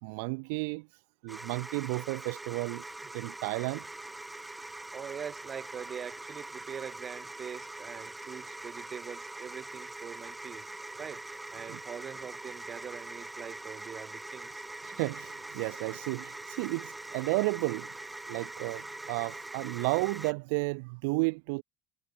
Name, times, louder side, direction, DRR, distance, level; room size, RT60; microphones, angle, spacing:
voice 1, 0.0-2.9 3.1-3.8 4.8-4.9 11.7-11.8 14.8-17.9 18.3-21.6, right 31 dB, 80° right, 1.8 m, -33 dB
sound 1, 1.3-20.3, right 2 dB, 5° right, 1.8 m, -43 dB
voice 2, 4.9-10.7 11.0-11.2 11.5-14.6 14.9-15.0, right 7 dB, 30° right, 6.1 m, -43 dB
cardioid pair, 135°, 0 cm